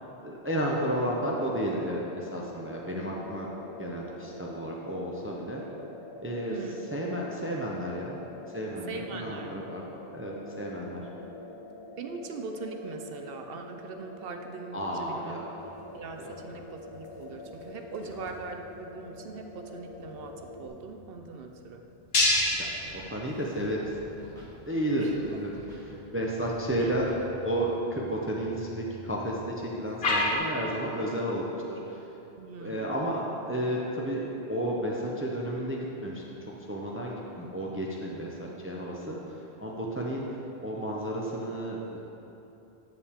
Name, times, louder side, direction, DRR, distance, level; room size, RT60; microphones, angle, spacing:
voice 1, 0.2-3.5 3.8-5.6 6.2-6.5 6.9-8.2 8.5-9.8 10.1-11.0 14.7-15.4 16.2-16.3 18.0-18.1 22.5-22.7 22.9-24.0 24.3-27.1 27.4-32.0 32.6-40.3 40.6-42.0, right 1 dB, 15° right, -2 dB, 0.6 m, -32 dB
sound 1, 0.7-20.7, left 2 dB, 30° left, 0.6 m, -46 dB
voice 2, 8.9-9.6 11.0-11.1 12.0-15.4 15.9-21.8 25.0-25.2 26.8-26.9 32.4-33.1, right 4 dB, 65° right, 5 dB, 0.7 m, -41 dB
sound 2, 15.6-30.4, left 2 dB, 65° left, 1.3 m, -35 dB
Scratching (performance technique), 22.3-22.5 22.8-23.2 23.5-24.5 25.0-25.2 25.5-25.9 26.4-27.2, equal, 45° right, 1.5 m, -50 dB
9.2 x 7.0 x 3.6 m, 3.0 s
omnidirectional pair, 1.1 m